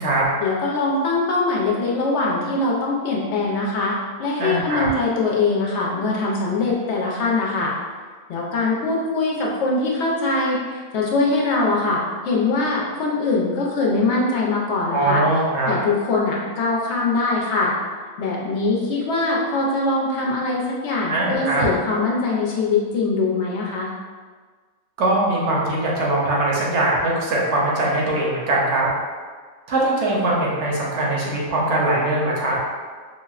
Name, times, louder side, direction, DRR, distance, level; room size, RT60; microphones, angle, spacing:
voice 1, 0.4-7.7 8.3-15.2 15.7-17.7 18.2-23.9, left 3 dB, 65° left, -3 dB, 0.7 m, -22 dB
voice 2, 4.4-4.9 14.9-15.7 21.1-21.7 25.0-28.9 29.7-32.6, right 2 dB, 65° right, -4 dB, 0.9 m, -21 dB
4.0 x 2.0 x 2.3 m, 1.5 s
omnidirectional pair, 1.4 m